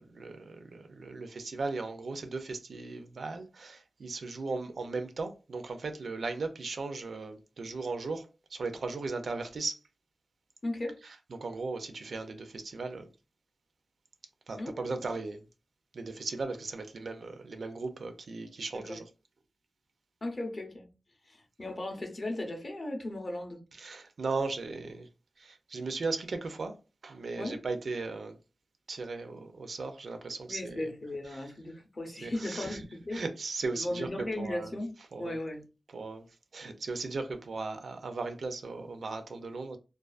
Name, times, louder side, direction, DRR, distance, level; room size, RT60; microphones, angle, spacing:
voice 1, 0.0-9.8 11.0-13.1 14.5-15.5 15.9-19.0 23.8-25.1 25.4-26.8 27.0-28.4 28.9-30.9 31.3-31.4 32.2-32.8 33.1-34.7 35.1-35.4 35.9-36.3 36.5-39.8, right 3 dB, 65° right, 0.4 m, -37 dB
voice 2, 10.6-11.0 14.5-14.9 18.9-19.0 20.2-20.9 21.3-23.6 27.4-27.6 30.4-33.2 33.7-34.9 35.2-35.7, left 1 dB, 35° left, 0.6 m, -36 dB
2.3 x 2.2 x 2.3 m
wide cardioid pair, 140°, 0 cm